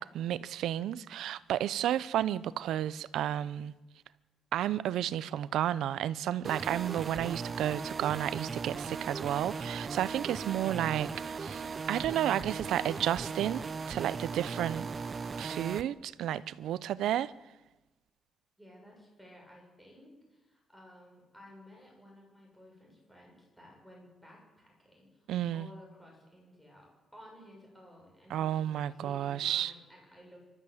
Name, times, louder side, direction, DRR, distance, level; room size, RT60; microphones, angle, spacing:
voice 1, 0.0-3.7 4.5-14.9 15.4-17.3 25.3-25.7 28.3-29.7, right 11 dB, 85° right, 0.7 m, -32 dB
voice 2, 1.6-2.0 18.6-30.5, left 1 dB, ahead, 7.2 m, -55 dB
sound 1, 6.4-15.8, right 5 dB, 30° right, 0.7 m, -38 dB
26.0 x 13.0 x 7.9 m
cardioid pair, 145°, 0 cm